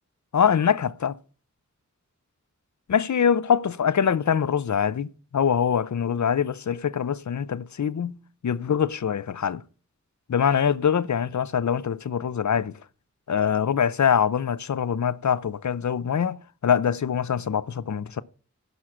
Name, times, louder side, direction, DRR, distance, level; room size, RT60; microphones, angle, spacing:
voice 1, 0.3-1.2 2.9-5.1 5.3-8.2 8.4-9.6 10.3-12.7 13.3-18.2, left 7 dB, 65° left, 0.6 m, -24 dB
11.5 x 5.8 x 6.0 m
wide cardioid pair, 50°, 30 cm